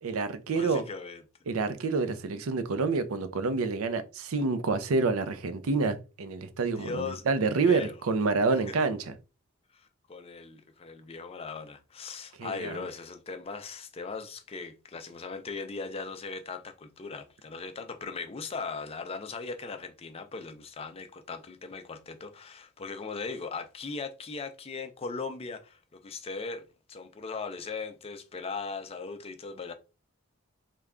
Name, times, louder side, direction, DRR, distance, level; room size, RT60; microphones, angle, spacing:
voice 1, 0.0-0.8 1.5-9.2 12.4-12.8, right 4 dB, 85° right, 0.5 m, -28 dB
voice 2, 0.5-1.2 6.8-7.2 7.6-7.9 9.7-29.7, left 4 dB, 30° left, 0.4 m, -39 dB
3.3 x 2.2 x 3.6 m
head